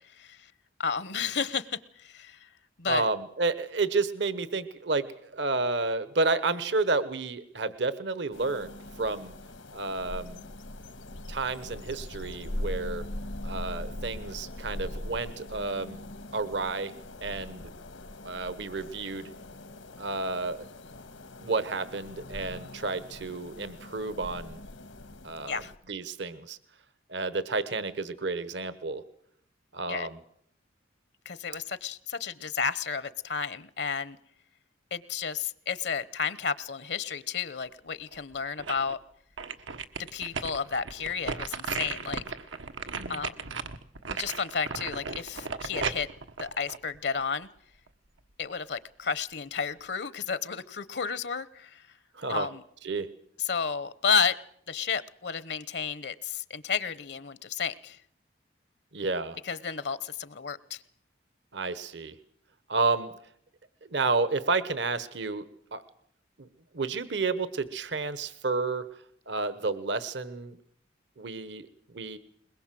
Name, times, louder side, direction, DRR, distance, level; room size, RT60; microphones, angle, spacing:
voice 1, 0.1-0.5 0.8-2.5 2.8-3.1 25.4-25.7 29.9-30.1 31.2-34.2 34.9-39.0 40.1-42.2 43.1-43.5 44.1-46.1 46.4-47.5 48.4-51.9 52.3-52.6 53.4-54.3 54.7-58.0 59.4-60.8, left 6 dB, 60° left, 17 dB, 0.9 m, -32 dB
voice 2, 2.9-9.3 9.7-10.5 11.3-13.0 13.4-16.0 16.3-16.9 17.2-17.6 18.2-19.3 20.0-20.6 21.4-24.6 25.2-25.6 25.9-26.6 27.1-29.0 29.7-30.2 42.9-43.2 52.1-52.5 52.8-53.1 58.9-59.4 61.5-62.1 62.7-63.1 63.8-65.5 65.7-65.8 66.4-66.5 66.7-68.8 69.3-70.6 71.2-71.7 71.9-72.2, right 3 dB, 65° right, 14 dB, 1.1 m, -31 dB
sound 1, 8.3-25.8, left 1 dB, 85° left, 1.8 m, -41 dB
sound 2, 38.1-39.0 39.4-47.4 47.9-48.0, right 5 dB, 90° right, 1.4 m, -36 dB
22.0 x 21.0 x 7.6 m, 0.67 s
head